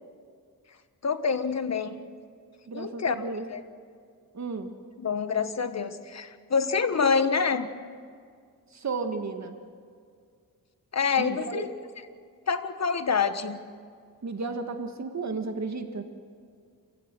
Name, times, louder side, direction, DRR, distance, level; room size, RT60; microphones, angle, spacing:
voice 1, 1.0-2.0 2.7-3.2 3.5-3.6 5.0-7.7 10.9-11.7 12.5-13.6, left 5 dB, 45° left, 10 dB, 1.4 m, -26 dB
voice 2, 2.7-3.4 4.3-4.7 8.7-9.6 11.2-11.6 14.2-16.0, right 4 dB, 50° right, 6 dB, 1.8 m, -33 dB
28.5 x 15.5 x 7.7 m, 2.2 s
cardioid pair, 95°, 36 cm